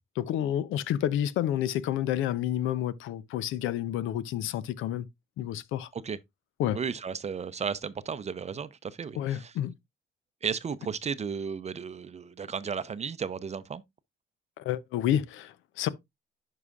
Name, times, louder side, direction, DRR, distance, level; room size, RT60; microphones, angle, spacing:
voice 1, 0.2-5.1 5.4-5.9 6.6-6.8 9.1-9.7 14.6-15.9, left 11 dB, 85° left, 0.6 m, -29 dB
voice 2, 6.7-9.5 10.4-13.8, right 6 dB, 35° right, 0.5 m, -34 dB
11.0 x 4.9 x 2.4 m
cardioid pair, 90°, 20 cm